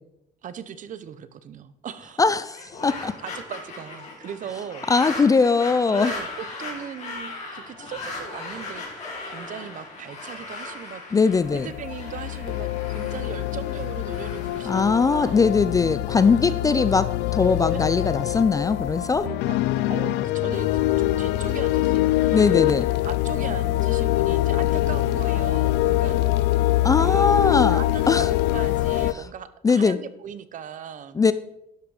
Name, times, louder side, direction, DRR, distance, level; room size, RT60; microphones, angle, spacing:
voice 1, 0.4-2.2 3.2-4.9 5.9-6.3 6.6-11.0 11.5-15.4 17.7-17.8 19.2-20.7 21.0-22.6 23.0-26.2 27.0-27.3 27.7-31.2, right 8 dB, 50° right, 14 dB, 0.7 m, -38 dB
voice 2, 2.2-3.1 4.9-6.1 11.1-11.7 14.7-19.2 22.3-22.9 26.8-28.3 29.1-29.2 29.6-30.0 31.2-31.3, left 4 dB, 20° left, 14 dB, 0.4 m, -21 dB
sound 1, 2.4-15.6, left 3 dB, 40° left, 3.9 m, -38 dB
sound 2, 11.3-29.1, left 15 dB, 85° left, 0.4 m, -24 dB
11.5 x 5.9 x 4.9 m, 0.84 s
cardioid pair, 110°, 17 cm